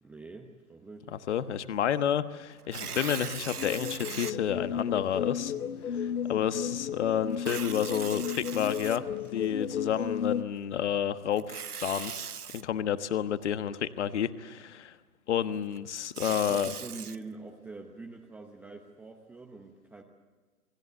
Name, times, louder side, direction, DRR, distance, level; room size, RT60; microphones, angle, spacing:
voice 1, 0.0-1.1 16.3-20.0, right 3 dB, 5° right, 2 dB, 0.9 m, -45 dB
voice 2, 1.1-5.5 5.9-9.0 9.3-12.1 12.5-15.0 15.3-16.7, left 9 dB, 50° left, 11 dB, 1.4 m, -30 dB
Tearing, 2.6-4.3 5.0-5.1 7.3-9.4 11.3-12.6 15.8-17.2, right 7 dB, 85° right, 1.0 m, -39 dB
sound 1, 3.5-10.4, left 8 dB, 75° left, 1.2 m, -34 dB
28.5 x 20.0 x 8.0 m, 1.4 s
figure-of-eight pair, 135°, 44 cm